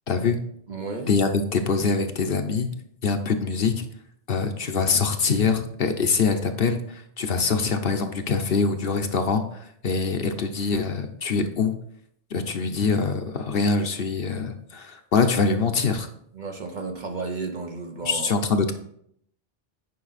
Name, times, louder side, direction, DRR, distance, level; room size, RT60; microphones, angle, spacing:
voice 1, 0.1-0.4 1.1-2.7 3.0-3.9 4.3-11.7 12.3-16.1 18.0-18.7, left 4 dB, 55° left, 6 dB, 0.9 m, -24 dB
voice 2, 0.7-1.1 16.3-18.4, right 3 dB, 45° right, 4 dB, 1.0 m, -33 dB
9.5 x 5.4 x 4.1 m, 0.69 s
omnidirectional pair, 1.2 m